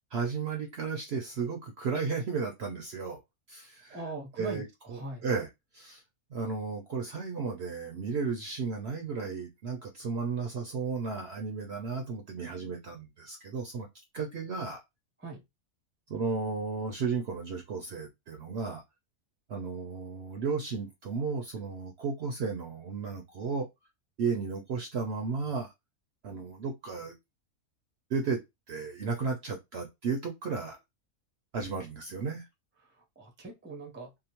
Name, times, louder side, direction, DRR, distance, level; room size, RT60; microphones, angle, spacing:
voice 1, 0.1-3.2 3.5-4.0 4.4-5.5 5.7-6.0 6.3-13.9 14.1-14.8 16.1-18.8 19.5-23.7 24.2-25.7 26.2-27.1 28.1-28.4 28.7-30.8 31.5-32.4, right 5 dB, 65° right, 0.7 m, -34 dB
voice 2, 3.9-4.7 4.9-5.3 15.2-15.4 33.0-34.1, right 3 dB, 15° right, 0.4 m, -41 dB
2.7 x 2.0 x 2.9 m
omnidirectional pair, 1.5 m